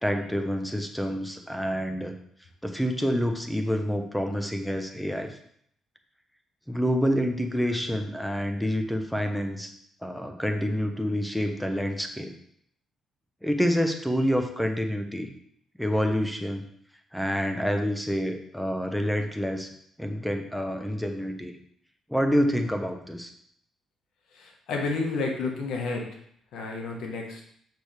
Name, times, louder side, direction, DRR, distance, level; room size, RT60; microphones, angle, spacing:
voice 1, 0.0-2.1 2.6-5.4 6.7-9.7 10.0-12.3 13.4-15.3 15.8-16.6 17.1-19.7 20.0-21.6 22.1-23.3, equal, ahead, 5 dB, 0.9 m, -27 dB
voice 2, 24.3-26.1 26.5-27.4, left 3 dB, 80° left, 1 dB, 1.5 m, -31 dB
6.6 x 6.0 x 3.5 m, 0.67 s
cardioid pair, 90°, 0 cm